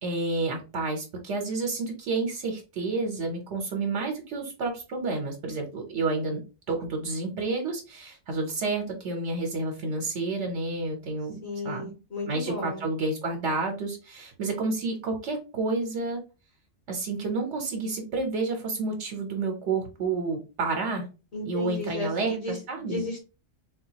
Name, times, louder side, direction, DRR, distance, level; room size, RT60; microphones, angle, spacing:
voice 1, 0.0-6.4 6.7-11.9 12.3-16.2 16.9-21.1 21.4-23.0, right 3 dB, 70° right, 3 dB, 1.0 m, -30 dB
voice 2, 11.4-12.9 21.3-23.2, left 1 dB, 55° left, -2 dB, 1.3 m, -34 dB
3.9 x 2.3 x 2.8 m, 0.31 s
omnidirectional pair, 1.3 m